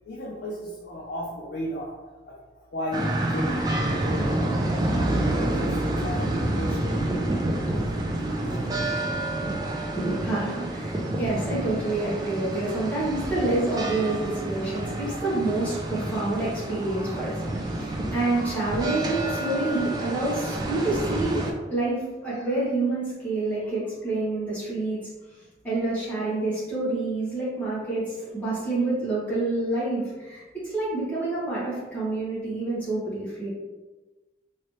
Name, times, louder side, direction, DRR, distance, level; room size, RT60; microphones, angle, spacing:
voice 1, 0.0-1.9 2.2-4.3 4.9-7.0 7.7-8.7 9.4-9.6, equal, 70° left, -4 dB, 0.5 m, -36 dB
sound 1, 2.9-21.5, right 1 dB, 20° right, 0.3 m, -28 dB
voice 2, 10.0-25.1 25.6-33.5, right 2 dB, 10° left, -9 dB, 1.1 m, -28 dB
3.1 x 2.7 x 3.1 m, 1.2 s
head